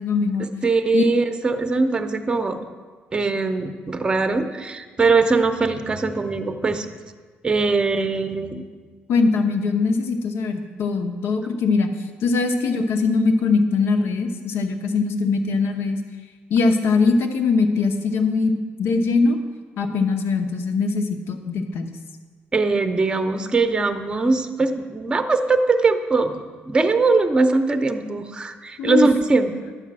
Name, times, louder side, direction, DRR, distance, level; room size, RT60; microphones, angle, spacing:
voice 1, 0.0-0.5 0.9-1.1 9.1-11.9 12.2-16.0 16.5-19.4 19.8-21.9 28.8-29.1, left 4 dB, 80° left, 5 dB, 0.9 m, -21 dB
voice 2, 0.6-2.6 3.1-6.9 7.4-8.6 22.5-29.5, right 3 dB, 20° right, 7 dB, 0.7 m, -21 dB
11.5 x 5.0 x 7.5 m, 1.5 s
cardioid pair, 135°, 4 cm